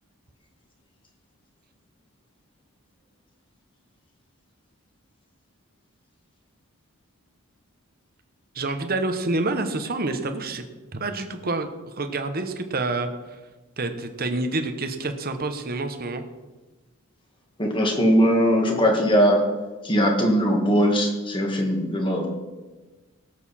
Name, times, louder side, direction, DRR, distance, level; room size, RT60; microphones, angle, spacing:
voice 1, 8.5-10.6 10.9-13.1 13.8-16.2, right 2 dB, 40° right, 7 dB, 1.0 m, -28 dB
voice 2, 17.6-19.4 19.8-22.3, equal, 20° left, 1 dB, 2.0 m, -20 dB
18.0 x 8.0 x 4.3 m, 1.2 s
head